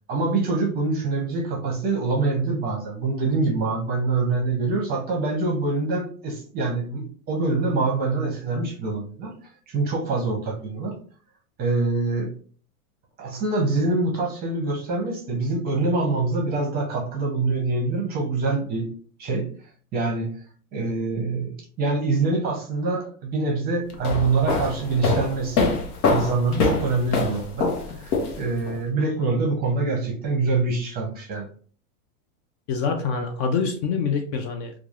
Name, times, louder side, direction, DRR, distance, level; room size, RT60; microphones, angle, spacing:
voice 1, 0.1-10.9 11.6-12.3 13.2-18.9 19.2-19.5 19.9-20.3 20.7-25.7 26.1-31.5, right 3 dB, 20° right, 0 dB, 0.6 m, -25 dB
sound 1, 23.9-28.7, left 4 dB, 90° left, 0.8 m, -24 dB
voice 2, 32.7-34.7, left 5 dB, 45° left, 5 dB, 0.5 m, -25 dB
3.1 x 2.3 x 2.4 m, 0.43 s
supercardioid pair, 145°, 44 cm